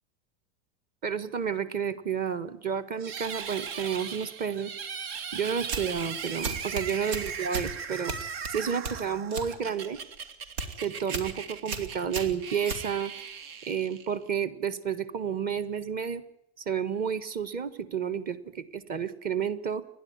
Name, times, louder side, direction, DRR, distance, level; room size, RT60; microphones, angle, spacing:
voice 1, 1.0-4.7 5.3-8.1 8.5-10.0 10.8-13.1 13.7-16.2 16.6-19.8, right 7 dB, 25° right, 13 dB, 1.6 m, -31 dB
sound 1, 3.0-14.3, right 6 dB, 65° right, 2.5 m, -39 dB
sound 2, 5.6-6.0 6.4-7.7 8.1-9.5 9.9-10.2 10.5-10.7 11.1-11.3 11.7-13.3, right 4 dB, 85° right, 3.9 m, -35 dB
29.5 x 11.5 x 9.7 m, 0.74 s
supercardioid pair, 150°, 32 cm